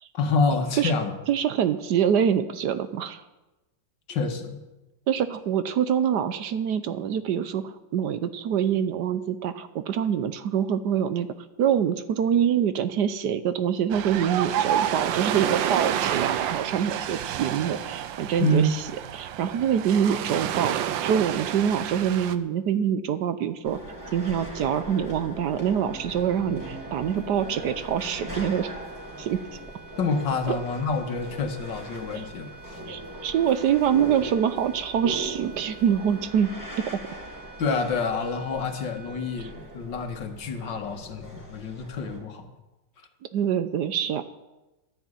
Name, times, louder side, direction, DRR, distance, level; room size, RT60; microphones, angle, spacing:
voice 1, 0.1-1.1 4.1-4.6 18.4-18.7 30.0-32.8 37.6-42.5, left 3 dB, 75° left, 6 dB, 2.1 m, -27 dB
voice 2, 1.3-3.2 5.1-11.3 11.6-18.8 19.1-20.7 21.0-23.8 24.1-28.7 29.2-29.4 30.5-30.6 32.1-32.3 32.9-36.5 36.7-36.8 39.4-39.5 43.3-44.2, right 8 dB, 65° right, 12 dB, 1.2 m, -25 dB
Ocean, 13.9-22.3, right 10 dB, 85° right, 1.5 m, -29 dB
sound 1, 23.6-42.2, right 1 dB, 10° right, 3.5 m, -40 dB
sound 2, 25.7-40.3, right 5 dB, 10° left, 2.0 m, -49 dB
12.0 x 10.5 x 8.9 m, 1.1 s
omnidirectional pair, 2.0 m